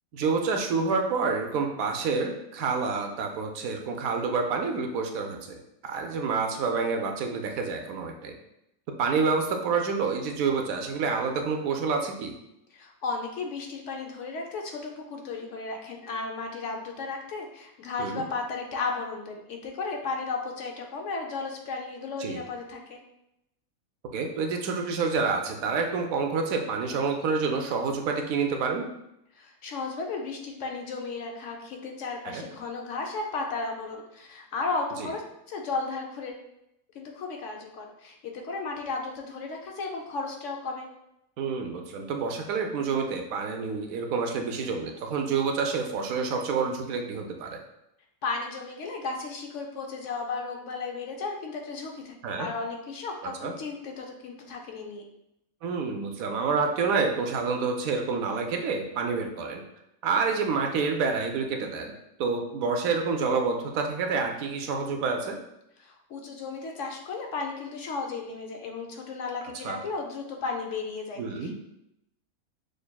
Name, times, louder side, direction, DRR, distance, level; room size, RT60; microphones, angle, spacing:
voice 1, 0.1-5.6 5.8-8.3 9.0-12.3 18.0-18.2 22.2-22.4 24.1-28.9 32.2-32.4 35.0-35.1 41.4-47.6 52.2-52.5 53.4-53.5 55.6-59.6 60.0-61.9 62.2-65.4 69.5-69.8 71.2-71.5, right 4 dB, 80° right, 3 dB, 1.0 m, -28 dB
voice 2, 12.7-23.0 29.3-35.2 35.5-36.4 36.9-40.9 48.2-55.0 65.8-71.6, left 4 dB, 65° left, 2 dB, 0.9 m, -34 dB
6.3 x 2.6 x 2.2 m, 0.83 s
omnidirectional pair, 1.5 m